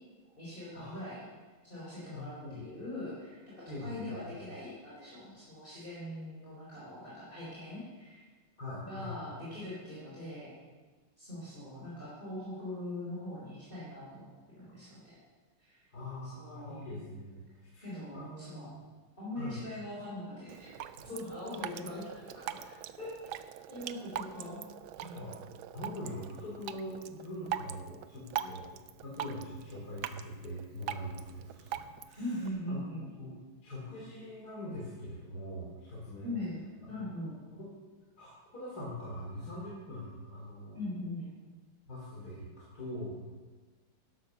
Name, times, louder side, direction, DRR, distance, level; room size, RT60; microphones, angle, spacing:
voice 1, 0.4-1.3 1.6-3.4 3.6-8.2 8.8-10.5 11.2-15.2 15.6-15.8 16.2-16.8 17.8-18.7 19.2-20.7 21.0-22.7 23.0-23.4 23.7-24.6 28.4-28.5 32.2-33.1 36.2-36.6 36.9-37.4 40.7-41.3, left 1 dB, 25° left, -8 dB, 4.2 m, -41 dB
voice 2, 2.1-2.6 3.7-4.0 8.6-9.1 15.9-17.4 17.7-18.8 19.3-19.6 25.0-25.3 25.7-28.8 29.0-33.3 33.6-36.3 36.9-37.1 37.5-37.7 38.2-40.8 41.9-43.2, left 1 dB, 45° left, -5 dB, 3.4 m, -43 dB
Drip, 20.5-32.5, right 10 dB, 75° right, 1.3 m, -42 dB
12.0 x 11.5 x 6.5 m, 1.4 s
omnidirectional pair, 2.4 m